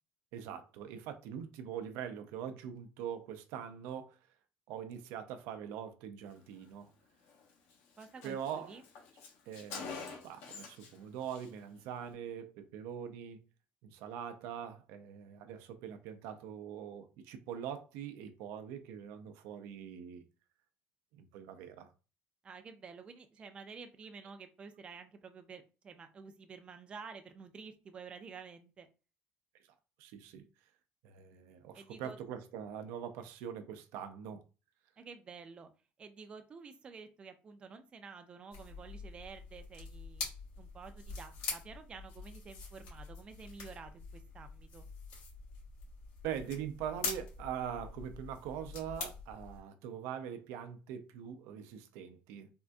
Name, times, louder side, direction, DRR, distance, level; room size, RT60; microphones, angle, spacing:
voice 1, 0.3-4.2 4.7-6.9 8.2-8.7 9.5-13.4 13.8-20.2 21.1-21.9 30.0-30.4 31.0-34.4 46.2-52.5, right 8 dB, 85° right, 0.5 m, -43 dB
Car, 7.3-7.4 7.7-7.8 8.0-11.0 11.2-11.5, left 5 dB, 65° left, 0.9 m, -46 dB
voice 2, 8.0-8.8 22.4-28.9 31.7-32.2 35.0-35.7 36.0-40.3 40.6-44.9, right 5 dB, 25° right, 0.4 m, -50 dB
sound 1, 38.5-49.6, left 4 dB, 85° left, 1.5 m, -45 dB
3.6 x 2.5 x 2.2 m
cardioid pair, 150°, 4 cm